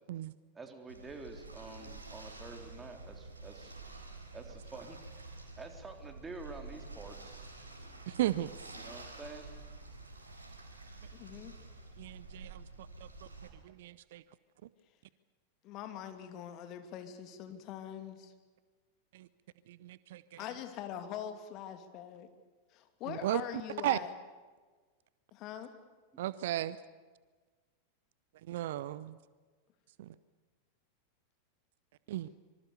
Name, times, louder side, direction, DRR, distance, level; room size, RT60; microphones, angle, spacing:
voice 1, 0.5-3.7 4.3-5.0 5.6-7.4 8.7-9.5, right 3 dB, 15° right, 5 dB, 3.8 m, -48 dB
sound 1, 0.9-13.5, right 3 dB, 80° right, 4.3 m, -49 dB
voice 2, 8.1-8.5 12.0-12.6 13.0-13.1 13.6-14.2 19.1-19.3 19.7-20.4 23.1-23.4 23.8-24.0 26.2-26.8 28.5-29.2 30.0-30.1 32.1-32.3, right 14 dB, 55° right, 17 dB, 0.7 m, -35 dB
voice 3, 11.1-11.5 15.6-18.3 20.4-22.3 22.7-24.1 25.3-25.7, left 10 dB, 40° left, 8 dB, 2.5 m, -43 dB
26.0 x 25.0 x 7.0 m, 1.4 s
figure-of-eight pair, 90°, 0 cm